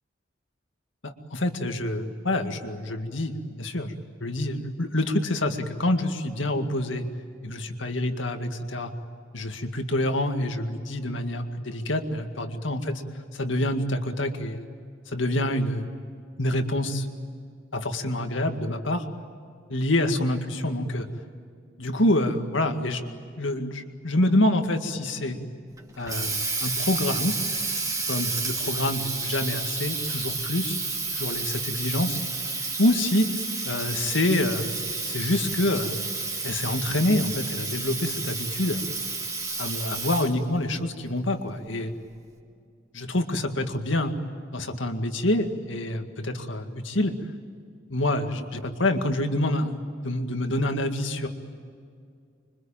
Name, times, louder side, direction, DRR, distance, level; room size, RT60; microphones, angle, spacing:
voice 1, 1.0-3.9 4.2-7.0 7.4-8.9 9.3-13.0 13.3-14.6 15.1-15.9 16.4-17.1 17.7-19.0 19.7-21.1 21.8-23.0 23.4-25.4 26.0-27.4 28.1-30.7 31.1-32.2 32.8-33.3 33.6-36.1 36.4-38.8 39.6-41.9 42.9-44.1 44.5-47.2 47.9-49.8 50.0-51.3, left 1 dB, 70° left, 6 dB, 2.1 m, -27 dB
Water tap faucet, 25.8-40.5, right 3 dB, 20° right, 2.8 m, -31 dB
26.5 x 24.5 x 8.9 m, 2.3 s
head